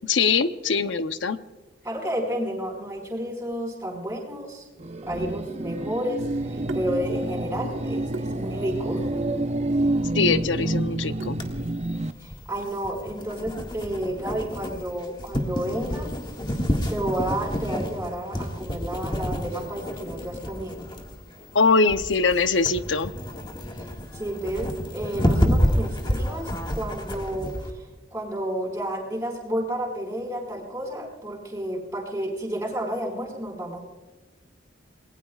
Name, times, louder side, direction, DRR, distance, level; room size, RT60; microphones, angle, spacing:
voice 1, 0.0-1.4 10.1-11.4 21.5-23.1, left 4 dB, 75° left, 11 dB, 0.8 m, -22 dB
voice 2, 1.8-4.7 5.1-9.3 12.2-16.2 16.9-20.9 23.8-33.8, right 1 dB, 15° right, -5 dB, 5.2 m, -31 dB
sound 1, 4.8-12.1, right 2 dB, 35° right, 0.8 m, -29 dB
Water tap faucet / Sink (filling or washing), 6.2-11.7, equal, 90° right, 1.4 m, -35 dB
sound 2, 11.4-27.7, equal, 25° left, 1.9 m, -29 dB
28.5 x 20.5 x 2.4 m, 1.2 s
head